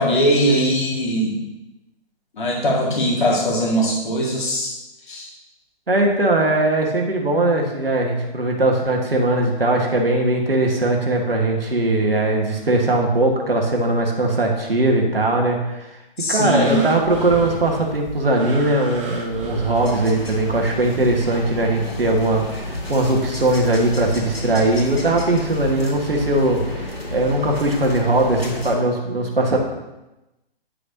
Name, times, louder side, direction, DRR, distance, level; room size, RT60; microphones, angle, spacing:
voice 1, 0.0-1.4 2.3-4.7 5.1-5.3 16.2-16.8 27.3-27.4, equal, 55° left, -3 dB, 1.8 m, -20 dB
voice 2, 5.9-15.9 16.3-29.6, right 2 dB, 75° right, 1 dB, 1.4 m, -20 dB
sound 1, 16.6-20.5 21.1-21.2, right 3 dB, 30° right, 1.2 m, -33 dB
sound 2, 19.7-28.8, left 1 dB, 80° left, 2.1 m, -31 dB
9.6 x 6.5 x 2.7 m, 0.98 s
figure-of-eight pair, 130°, 30 cm